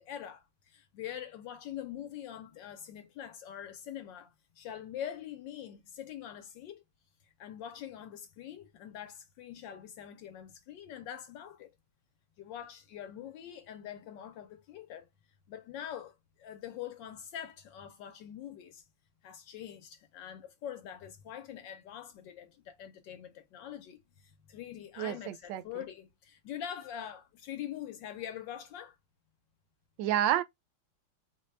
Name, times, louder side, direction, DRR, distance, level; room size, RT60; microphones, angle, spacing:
voice 1, 0.0-6.8 7.4-11.7 12.4-15.1 15.5-18.8 19.2-29.0, left 10 dB, 70° left, 1.1 m, -44 dB
voice 2, 25.0-25.6 30.0-30.4, right 11 dB, 75° right, 1.1 m, -29 dB
4.1 x 2.2 x 3.1 m
omnidirectional pair, 2.3 m